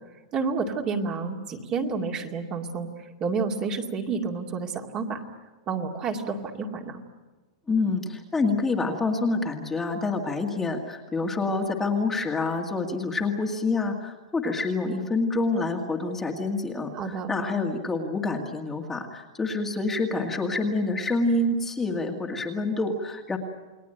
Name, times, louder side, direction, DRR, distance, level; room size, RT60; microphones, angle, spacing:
voice 1, 0.3-5.2 5.7-7.0 16.9-17.3, right 4 dB, 25° right, 3 dB, 2.4 m, -30 dB
voice 2, 7.7-23.4, left 3 dB, 10° left, 2 dB, 2.0 m, -27 dB
29.5 x 20.5 x 9.1 m, 1.3 s
supercardioid pair, 165°, 3 cm